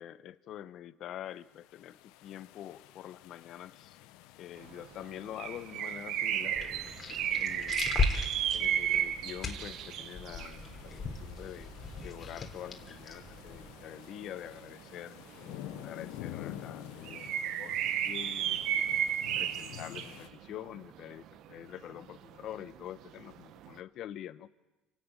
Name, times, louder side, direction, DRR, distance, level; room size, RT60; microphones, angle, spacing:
voice 1, 0.0-4.0 4.4-7.9 8.5-11.7 12.0-15.2 15.8-17.8 18.0-18.9 19.3-24.5, left 11 dB, 60° left, 14 dB, 0.9 m, -46 dB
sound 1, 1.5-20.3, left 13 dB, 85° left, 1.0 m, -50 dB
sound 2, 4.6-23.7, right 10 dB, 65° right, 1.0 m, -34 dB
sound 3, 6.5-13.8, left 4 dB, 35° left, 3.2 m, -37 dB
29.0 x 11.5 x 9.1 m, 1.1 s
cardioid pair, 105°, 0 cm